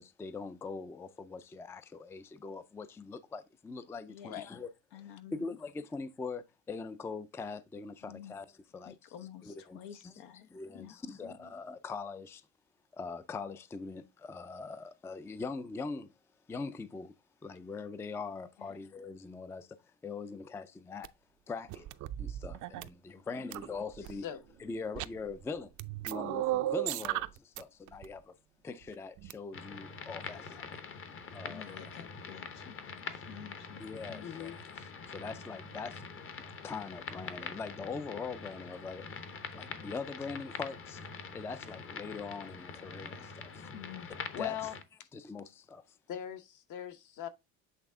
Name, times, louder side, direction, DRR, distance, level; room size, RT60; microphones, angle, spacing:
voice 1, 0.0-4.7 5.3-8.5 8.7-8.9 9.4-9.8 10.0-10.1 10.5-12.4 12.9-16.1 16.5-17.1 17.4-21.1 21.5-21.9 22.2-24.3 24.6-25.7 26.0-28.3 28.6-30.7 31.3-31.8 33.8-36.0 36.6-39.1 39.5-41.0 41.3-43.7 44.4-44.7 45.1-46.0, left 4 dB, 10° left, 0.3 m, -42 dB
voice 2, 4.1-4.4 4.9-5.5 8.0-8.4 8.8-11.1 18.6-18.7 23.2-23.5 30.3-30.6 31.4-34.3 43.7-44.1, left 10 dB, 90° left, 1.0 m, -50 dB
sound 1, 21.0-21.1 21.7-22.9 23.5-24.1 24.9-25.4 25.8-27.6 27.9-28.1 29.2-29.3, right 14 dB, 55° right, 0.5 m, -35 dB
sound 2, 29.5-44.8, left 5 dB, 35° left, 0.8 m, -45 dB
voice 3, 34.2-34.6 44.3-44.7 46.1-47.3, left 10 dB, 60° left, 1.0 m, -40 dB
8.1 x 3.4 x 3.6 m
cardioid pair, 120°, 36 cm